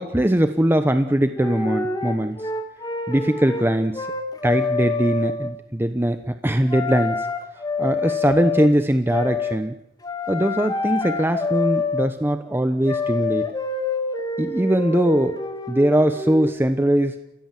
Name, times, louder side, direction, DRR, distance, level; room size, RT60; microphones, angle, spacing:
voice 1, 0.0-2.5 3.1-4.1 4.4-7.3 7.8-9.8 10.3-13.5 14.4-15.4 15.7-17.1, right 1 dB, 10° right, 8 dB, 0.9 m, -21 dB
sound 1, 1.0-1.1 1.3-3.7 3.9-5.5 6.7-8.7 9.1-9.6 10.0-12.1 12.8-16.5, left 3 dB, 20° left, 2.1 m, -27 dB
30.0 x 16.5 x 7.6 m, 0.89 s
head